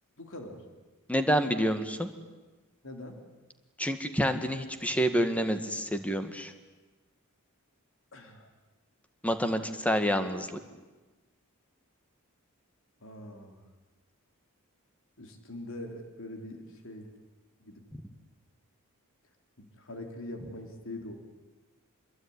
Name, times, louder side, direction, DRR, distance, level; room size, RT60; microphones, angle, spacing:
voice 1, 0.2-0.6 2.8-3.2 8.1-8.5 13.0-13.6 15.2-17.1 17.6-17.8 19.6-21.1, left 1 dB, 60° left, 4 dB, 3.8 m, -43 dB
voice 2, 1.1-2.1 3.8-6.5 9.2-10.5, equal, 5° left, 8 dB, 1.9 m, -28 dB
27.0 x 22.0 x 9.7 m, 1.2 s
head